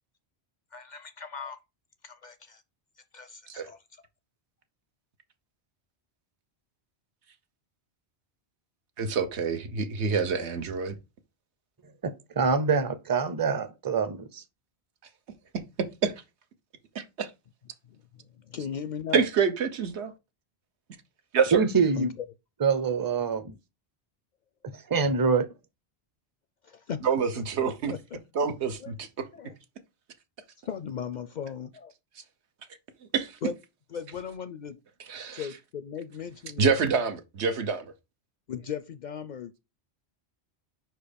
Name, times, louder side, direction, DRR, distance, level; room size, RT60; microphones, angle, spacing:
voice 1, 0.7-1.6 2.0-2.6 3.1-3.8 17.9-18.0 18.3-19.2 22.0-22.2 26.6-27.0 27.3-28.2 28.8-28.9 29.3-29.5 30.6-31.9 33.4-33.5 33.9-34.8 35.3-36.7 38.5-39.7, left 7 dB, 55° left, 0.5 m, -37 dB
voice 2, 9.0-10.9 16.0-16.1 16.9-17.3 19.1-20.1 21.3-21.6 27.0-27.9 28.3-29.3 33.1-33.4 35.1-35.5 36.6-37.9, right 5 dB, 85° right, 1.2 m, -27 dB
voice 3, 12.0-14.4 21.5-22.1 22.6-23.5 24.7-25.5, right 5 dB, 25° right, 0.5 m, -25 dB
5.2 x 4.6 x 5.1 m
omnidirectional pair, 1.1 m